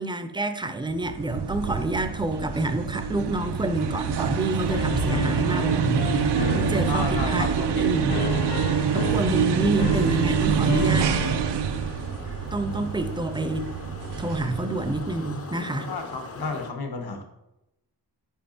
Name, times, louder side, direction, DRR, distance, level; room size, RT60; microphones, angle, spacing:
voice 1, 0.0-8.1 8.9-11.2 12.5-13.7 14.2-15.9, right 2 dB, 10° right, 0.5 m, -28 dB
sound 1, 0.9-15.4, right 8 dB, 75° right, 0.6 m, -26 dB
Piano, 4.7-11.5, left 8 dB, 80° left, 0.5 m, -33 dB
sound 2, 5.1-16.7, left 4 dB, 35° left, 0.7 m, -41 dB
voice 2, 6.9-8.1 8.8-9.0 15.8-17.2, left 4 dB, 65° left, 1.1 m, -33 dB
5.5 x 4.9 x 4.4 m
wide cardioid pair, 85°, 41 cm